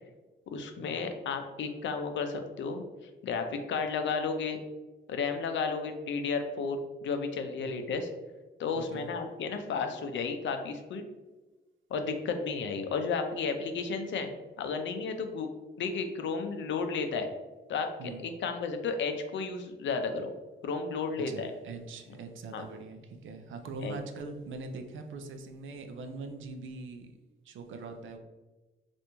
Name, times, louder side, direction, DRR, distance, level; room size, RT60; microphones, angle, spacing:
voice 1, 0.5-2.8 3.2-4.6 5.1-8.1 8.6-11.0 11.9-15.5 15.8-17.3 17.7-17.9 18.2-20.3 20.6-21.5 22.5-22.6 23.8-24.0, left 5 dB, 65° left, 6 dB, 0.5 m, -33 dB
voice 2, 8.7-9.1 18.0-18.3 21.2-27.1 27.4-28.2, right 3 dB, 70° right, 6 dB, 0.5 m, -42 dB
3.3 x 2.5 x 2.9 m, 1.2 s
cardioid pair, 95°, 21 cm